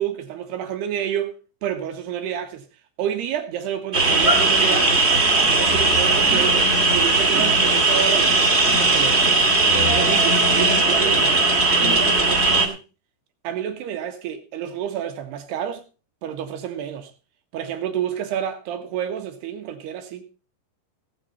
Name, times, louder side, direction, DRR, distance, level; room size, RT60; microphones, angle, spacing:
voice 1, 0.0-1.4 1.6-2.7 3.0-5.1 5.4-8.4 8.8-9.4 9.9-12.8 13.4-15.8 16.2-17.1 17.5-20.3, right 9 dB, 85° right, 3.6 m, -29 dB
sound 1, 3.9-12.7, right 3 dB, 30° right, 1.2 m, -18 dB
17.5 x 8.6 x 4.1 m
omnidirectional pair, 4.6 m